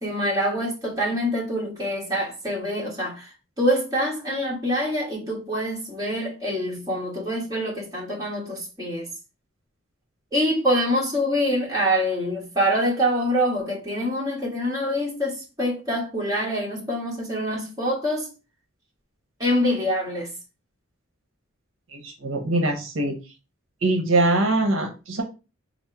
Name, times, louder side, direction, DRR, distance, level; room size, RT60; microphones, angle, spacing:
voice 1, 0.0-3.3 3.6-9.1 10.3-18.3 19.4-20.3, equal, 20° right, 1.5 m, -25 dB
voice 2, 21.9-23.1 23.8-25.2, right 2 dB, 70° right, 0.8 m, -23 dB
4.2 x 2.0 x 4.6 m
head